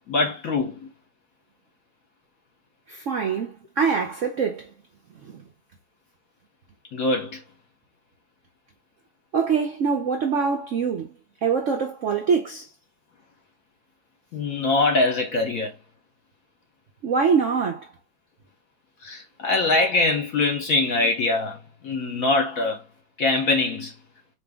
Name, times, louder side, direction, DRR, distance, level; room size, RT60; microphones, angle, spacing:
voice 1, 0.1-0.8 6.9-7.4 14.3-15.7 19.0-21.6 21.8-22.8 23.2-23.9, left 3 dB, 55° left, 1.0 m, -23 dB
voice 2, 2.9-4.7 9.3-11.1 11.4-12.6 17.0-17.8, right 5 dB, 85° right, 0.6 m, -24 dB
4.5 x 3.0 x 3.4 m
omnidirectional pair, 2.2 m